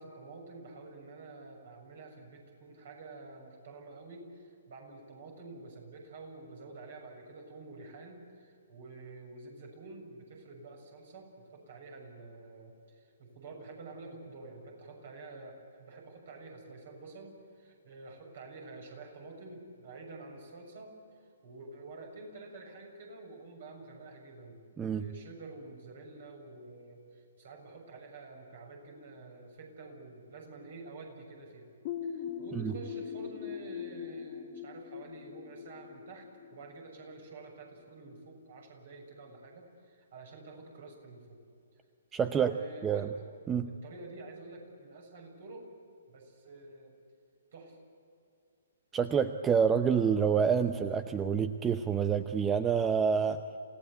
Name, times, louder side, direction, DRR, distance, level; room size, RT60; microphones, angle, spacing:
voice 1, 0.0-20.9 21.4-24.6 24.9-31.7 32.0-36.3 36.5-41.4 42.2-43.2 43.6-45.7 46.1-46.9 47.5-47.8, right 3 dB, 55° right, 2 dB, 6.9 m, -49 dB
sound 1, 31.9-37.4, left 8 dB, 40° left, 1.8 m, -41 dB
voice 2, 42.1-42.5 42.8-43.1 43.5-43.7 48.9-53.4, right 7 dB, 15° right, 10 dB, 0.7 m, -27 dB
28.0 x 17.5 x 8.3 m, 2.5 s
figure-of-eight pair, 125°, 0 cm